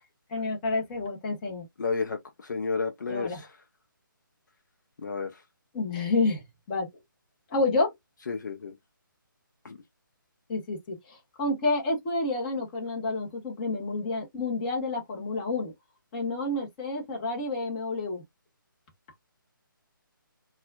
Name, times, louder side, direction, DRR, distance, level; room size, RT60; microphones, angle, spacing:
voice 1, 0.3-1.6 3.1-3.4 5.7-6.9 7.5-7.9 10.5-15.7 16.1-18.2, left 3 dB, 25° left, 1.3 m, -29 dB
voice 2, 1.8-3.6 5.0-5.4 8.3-8.7 9.6-9.8, left 4 dB, 55° left, 0.7 m, -32 dB
4.1 x 2.4 x 2.2 m
figure-of-eight pair, 155°, 11 cm